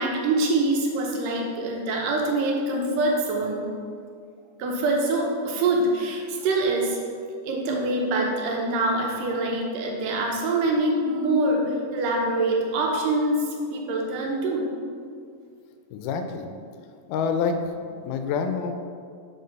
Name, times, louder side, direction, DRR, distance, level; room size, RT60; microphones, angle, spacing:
voice 1, 0.0-3.7 4.6-7.0 7.4-14.7, right 2 dB, 85° right, 0 dB, 2.5 m, -25 dB
voice 2, 15.9-16.5 17.1-18.7, left 5 dB, 85° left, 6 dB, 2.1 m, -27 dB
6.6 x 4.4 x 5.2 m, 2.2 s
omnidirectional pair, 3.7 m